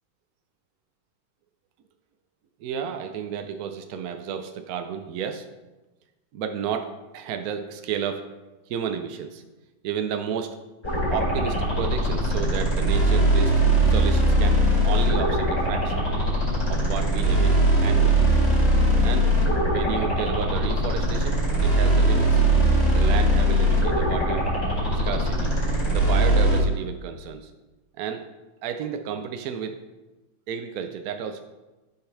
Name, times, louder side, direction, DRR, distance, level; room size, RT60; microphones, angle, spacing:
voice 1, 2.6-5.5 6.3-8.2 8.7-9.4 9.8-10.6 11.1-13.5 13.9-16.1 16.7-18.2 19.0-19.3 19.7-22.4 22.9-24.5 25.0-25.6 25.9-27.5 28.0-28.2 28.6-29.8 30.5-31.4, right 7 dB, 75° right, 7 dB, 0.8 m, -32 dB
sound 1, 10.8-26.6, right 1 dB, 35° left, 3.5 m, -21 dB
13.0 x 5.7 x 3.3 m, 1.1 s
omnidirectional pair, 2.2 m